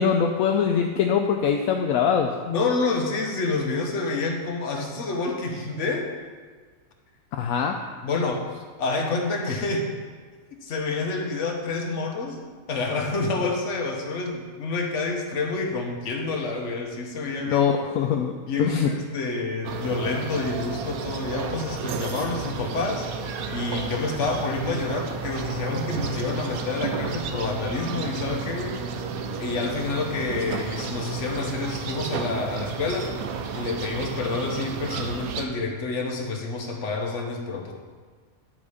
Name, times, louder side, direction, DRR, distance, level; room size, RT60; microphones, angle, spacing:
voice 1, 0.0-2.3 7.4-7.8 17.5-18.3 18.6-18.9, left 7 dB, 75° left, 3 dB, 1.0 m, -22 dB
voice 2, 2.4-6.1 8.0-8.5 8.8-9.9 10.6-12.4 12.7-17.7 18.4-28.8 29.4-33.1 33.5-37.7, left 3 dB, 60° left, 1 dB, 1.3 m, -28 dB
sound 1, 19.6-35.5, right 5 dB, 80° right, 1.1 m, -32 dB
10.5 x 4.2 x 4.9 m, 1.5 s
omnidirectional pair, 1.5 m